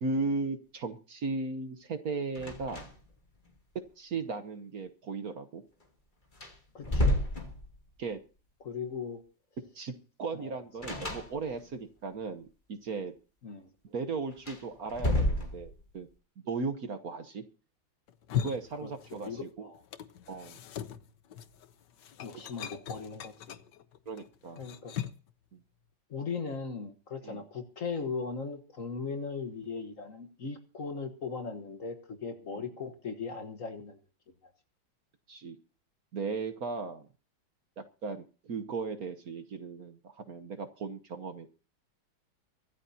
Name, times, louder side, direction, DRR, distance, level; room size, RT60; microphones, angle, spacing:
voice 1, 0.0-2.9 4.0-5.6 8.0-8.2 9.7-9.9 10.2-13.1 13.8-16.1 16.4-17.4 18.3-19.7 20.3-20.6 24.1-24.6 25.5-25.6 27.2-27.4 32.5-32.6 35.3-35.6 36.1-37.1 37.8-41.5, right 4 dB, 55° right, 9 dB, 1.4 m, -36 dB
sound 1, 2.3-3.2 3.5-3.6 5.8-5.9 6.3-8.0 10.8-11.8 14.3-16.0, left 1 dB, 25° left, 2.6 m, -31 dB
voice 2, 6.7-7.2 8.6-9.2 10.3-10.6 13.4-13.7 18.8-19.8 22.2-23.6 24.6-25.0 26.1-34.0, left 5 dB, 45° left, 7 dB, 1.5 m, -38 dB
sound 2, 18.1-19.5 19.7-25.3, left 10 dB, 65° left, 1.5 m, -39 dB
24.0 x 13.0 x 2.8 m, 0.36 s
omnidirectional pair, 2.2 m